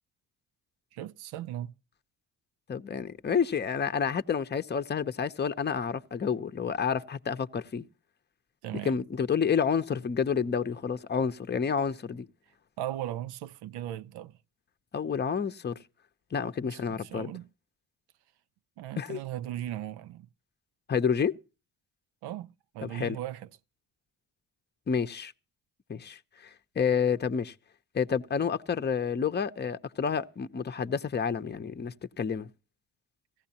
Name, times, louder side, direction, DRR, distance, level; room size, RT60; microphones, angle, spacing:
voice 1, 0.9-1.7 8.6-9.0 12.8-14.4 16.6-17.5 18.8-20.3 22.2-23.5, right 12 dB, 80° right, 0.5 m, -37 dB
voice 2, 2.7-7.8 8.8-12.3 14.9-15.8 16.3-17.3 19.0-19.2 20.9-21.4 22.8-23.2 24.9-25.3 25.9-27.5 27.9-32.5, left 6 dB, 25° left, 0.7 m, -29 dB
17.0 x 14.5 x 2.8 m
supercardioid pair, 60°, 38 cm